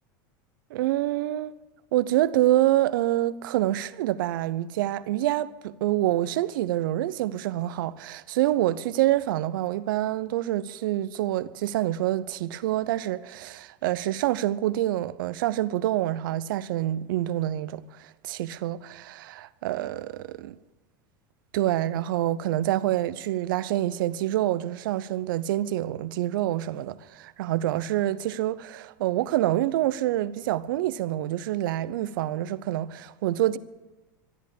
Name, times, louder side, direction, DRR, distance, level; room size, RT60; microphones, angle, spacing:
voice 1, 0.7-1.5 1.9-20.6 21.5-33.6, right 14 dB, 70° right, 0.7 m, -26 dB
13.5 x 10.5 x 8.5 m
hypercardioid pair, 95°, 11 cm